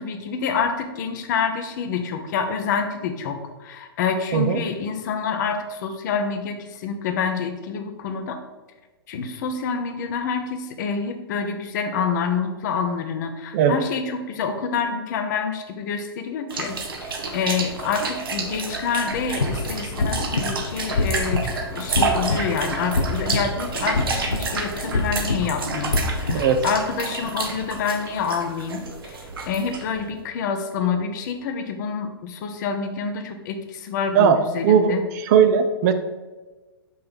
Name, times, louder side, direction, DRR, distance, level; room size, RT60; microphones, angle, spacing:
voice 1, 0.0-8.3 9.1-16.7 17.0-35.0, left 6 dB, 50° left, 6 dB, 0.7 m, -27 dB
sound 1, 16.5-30.1, right 4 dB, 65° right, 1.0 m, -30 dB
sound 2, 19.1-26.8, left 3 dB, 80° left, 0.6 m, -27 dB
voice 2, 26.3-26.6 34.1-34.4 34.6-35.9, right 8 dB, 40° right, 9 dB, 0.5 m, -18 dB
5.5 x 3.3 x 5.6 m, 1.3 s
figure-of-eight pair, 105°, 13 cm